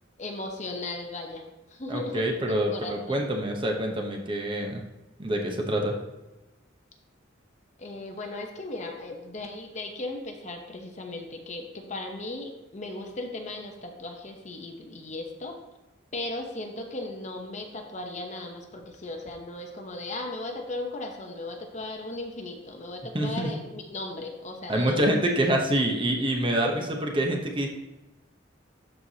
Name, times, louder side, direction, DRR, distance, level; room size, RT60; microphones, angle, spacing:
voice 1, 0.2-3.2 7.8-15.6 16.1-25.0 26.6-26.8, left 2 dB, 35° left, 2 dB, 0.9 m, -37 dB
voice 2, 1.9-4.8 5.2-6.0 23.1-23.5 24.7-27.7, right 1 dB, 25° right, 1 dB, 0.9 m, -26 dB
12.5 x 4.6 x 2.8 m, 1.0 s
head